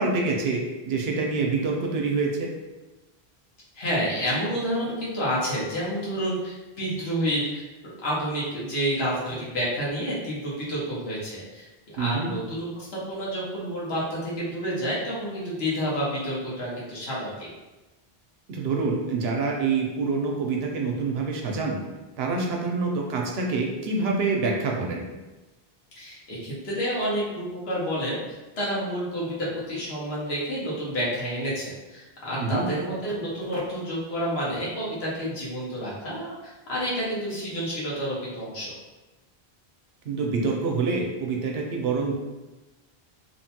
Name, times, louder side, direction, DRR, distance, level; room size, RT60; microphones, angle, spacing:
voice 1, 0.0-2.5 12.0-12.3 18.5-21.8 22.2-25.0 32.4-32.7 40.1-42.1, right 4 dB, 80° right, 0 dB, 0.8 m, -26 dB
voice 2, 3.7-17.5 25.9-38.7, equal, 80° left, -7 dB, 1.2 m, -29 dB
2.9 x 2.2 x 2.8 m, 1.1 s
omnidirectional pair, 1.0 m